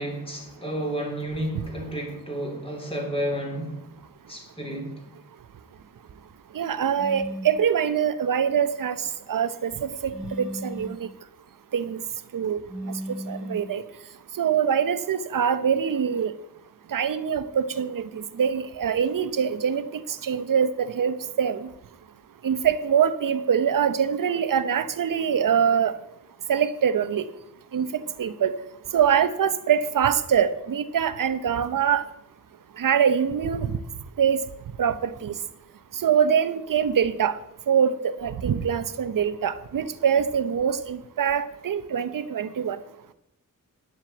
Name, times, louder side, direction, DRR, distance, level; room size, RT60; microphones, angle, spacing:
voice 1, 0.0-3.8 4.3-5.0, right 1 dB, 15° left, 3.1 m, -31 dB
voice 2, 6.5-9.0 9.3-11.1 11.7-12.0 12.3-12.6 13.3-13.8 14.4-16.3 16.9-19.9 20.2-21.7 22.4-25.9 26.5-27.2 27.7-28.5 28.9-32.0 32.8-33.7 34.2-34.4 34.8-35.3 36.0-37.3 37.7-42.8, right 8 dB, 75° right, 0.8 m, -24 dB
sound 1, 7.0-7.6 10.1-11.0 12.7-13.7, equal, 5° right, 3.2 m, -35 dB
10.5 x 7.6 x 7.8 m
wide cardioid pair, 170°, 33 cm